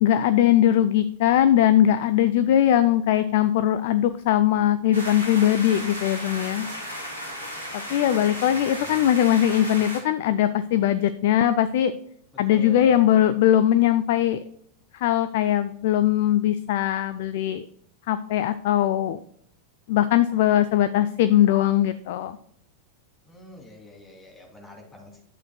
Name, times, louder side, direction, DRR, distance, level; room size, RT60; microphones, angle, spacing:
voice 1, 0.0-6.7 7.7-11.9 12.4-14.4 14.9-17.6 18.1-19.2 19.9-22.4, left 11 dB, 50° left, 12 dB, 0.4 m, -20 dB
sound 1, 4.9-10.0, equal, 80° right, 3.4 m, -35 dB
voice 2, 7.9-8.8 12.5-13.0 23.2-25.2, left 1 dB, 10° left, -1 dB, 2.9 m, -45 dB
10.5 x 8.1 x 2.3 m, 0.67 s
figure-of-eight pair, 90°, 0 cm